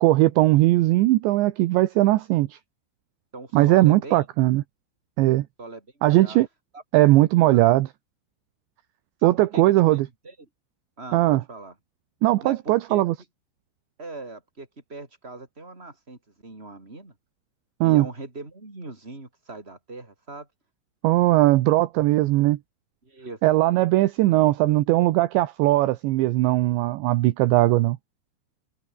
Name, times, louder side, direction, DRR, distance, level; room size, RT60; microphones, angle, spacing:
voice 1, 0.0-2.6 3.5-4.6 5.2-5.4 6.0-6.5 6.9-7.9 9.2-10.1 11.1-11.4 12.2-13.2 17.8-18.1 21.0-22.6 23.4-28.0, right 17 dB, 75° right, 3.0 m, -19 dB
voice 2, 3.3-4.3 5.6-6.4 6.7-6.8 7.4-7.6 9.2-10.5 11.0-11.7 12.4-13.0 14.0-17.1 17.8-20.5 21.6-21.7 23.0-23.4 24.0-24.1, right 2 dB, 10° right, 5.5 m, -40 dB
omnidirectional pair, 5.7 m